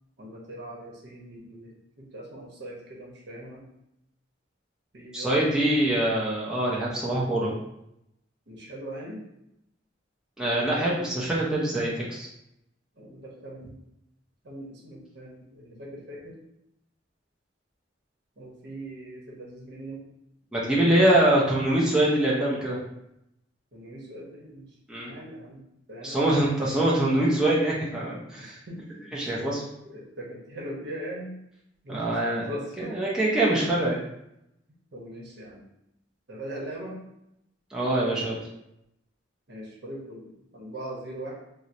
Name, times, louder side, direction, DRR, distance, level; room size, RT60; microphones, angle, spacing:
voice 1, 0.2-1.7 2.1-3.6 4.9-5.8 8.5-9.2 13.0-13.7 14.4-16.4 18.4-20.0 20.7-21.2 23.7-24.7 25.0-25.6 25.9-26.2 26.6-26.8 28.4-28.8 29.2-31.3 31.8-32.2 32.5-32.9 34.9-35.6 36.3-37.0 39.5-41.3, right 1 dB, 60° right, -3 dB, 0.9 m, -40 dB
voice 2, 5.1-7.5 10.4-12.3 20.5-22.8 24.9-25.1 26.0-28.6 29.1-29.6 31.9-32.5 32.8-34.0 37.7-38.4, right 1 dB, 5° right, -7 dB, 0.6 m, -24 dB
4.4 x 2.1 x 2.6 m, 0.82 s
head